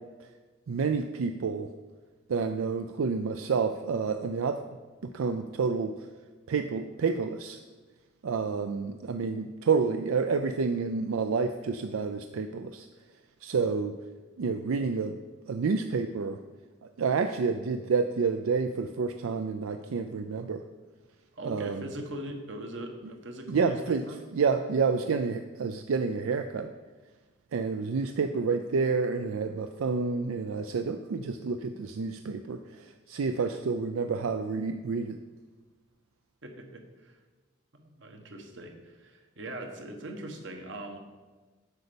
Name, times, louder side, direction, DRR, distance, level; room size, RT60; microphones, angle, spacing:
voice 1, 0.7-1.7 2.3-4.6 5.1-5.9 6.5-7.6 8.2-12.9 13.4-14.0 14.4-15.2 15.5-16.4 16.8-20.6 21.4-21.8 23.5-24.0 24.3-26.7 27.5-35.2, right 5 dB, 85° right, 8 dB, 0.4 m, -29 dB
voice 2, 21.3-24.2 33.5-33.6 36.4-37.2 37.7-41.0, right 1 dB, 60° right, 4 dB, 1.2 m, -41 dB
8.1 x 5.2 x 6.9 m, 1.3 s
head